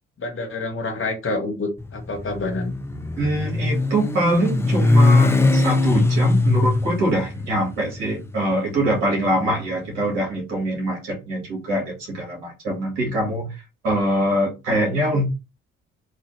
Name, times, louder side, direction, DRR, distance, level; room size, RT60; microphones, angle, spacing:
voice 1, 0.2-2.7, left 2 dB, 35° left, 4 dB, 1.2 m, -27 dB
Motorcycle, 1.8-10.0, left 2 dB, 5° left, 0.4 m, -21 dB
voice 2, 3.2-15.3, right 1 dB, 75° right, -2 dB, 1.8 m, -23 dB
3.3 x 2.7 x 3.2 m, 0.27 s
figure-of-eight pair, 45°, 35 cm